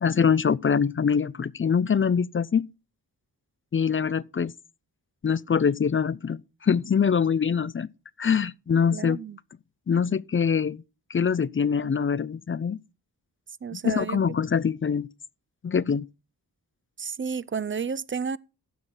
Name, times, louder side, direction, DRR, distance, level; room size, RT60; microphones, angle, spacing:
voice 1, 0.0-2.7 3.7-4.5 5.2-7.9 8.2-9.2 9.9-10.8 11.1-12.8 13.7-15.1 15.6-16.1, left 6 dB, 35° left, 0.4 m, -24 dB
voice 2, 8.9-9.4 13.6-14.2 17.0-18.4, right 6 dB, 35° right, 0.4 m, -31 dB
15.0 x 6.0 x 3.9 m
wide cardioid pair, 65°, 38 cm